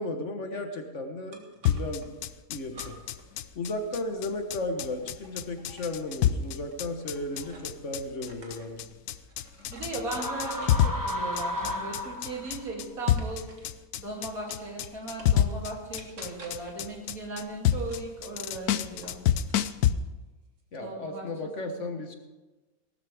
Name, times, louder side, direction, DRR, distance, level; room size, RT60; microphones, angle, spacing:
voice 1, 0.0-2.1 2.5-2.9 3.5-8.9 20.7-22.1, left 2 dB, 55° left, 5 dB, 1.6 m, -34 dB
sound 1, 1.3-2.1 2.7-3.3 3.6-7.8 8.2-13.8 14.2-15.5 16.0-16.8 17.8-19.2 19.5-20.1, right 1 dB, 55° right, 2.1 m, -51 dB
sound 2, 1.7-19.9, left 10 dB, 90° left, 1.1 m, -28 dB
voice 2, 9.7-13.5 14.0-19.2 20.8-21.3 21.6-21.9, right 2 dB, 70° right, -2 dB, 3.5 m, -37 dB
sound 3, 10.0-12.6, equal, 15° right, 0.9 m, -33 dB
17.5 x 13.0 x 3.6 m, 1.2 s
omnidirectional pair, 1.6 m